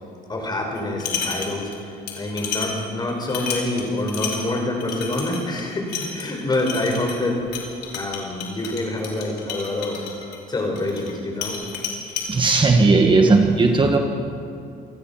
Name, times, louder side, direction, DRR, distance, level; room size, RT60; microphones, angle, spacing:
voice 1, 0.3-7.4 7.9-10.1 10.5-11.6, left 2 dB, 25° left, 1 dB, 5.5 m, -26 dB
sound 1, 0.7-1.8 2.1-11.1 11.4-12.3, left 6 dB, 75° left, 4.7 m, -31 dB
voice 2, 12.3-14.0, right 3 dB, 30° right, 3 dB, 1.7 m, -16 dB
27.5 x 17.0 x 6.0 m, 2.5 s
cardioid pair, 110°, 17 cm